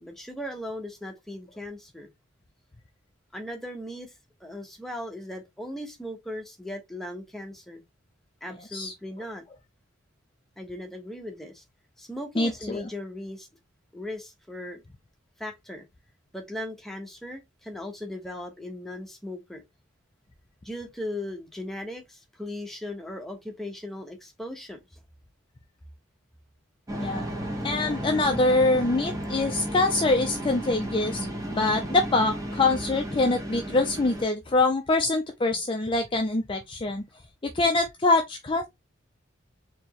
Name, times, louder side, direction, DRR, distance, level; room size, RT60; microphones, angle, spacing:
voice 1, 0.0-2.1 3.3-4.1 4.4-7.8 8.4-9.4 10.6-11.6 12.0-13.5 13.9-14.8 15.4-15.9 16.3-19.6 20.6-24.8, left 1 dB, ahead, 0.9 m, -38 dB
voice 2, 12.4-12.9 27.0-27.3 27.6-31.3 31.5-37.0 37.4-38.7, left 2 dB, 25° left, 0.4 m, -24 dB
sound 1, 26.9-34.2, equal, 15° right, 1.1 m, -33 dB
4.3 x 2.9 x 2.9 m
head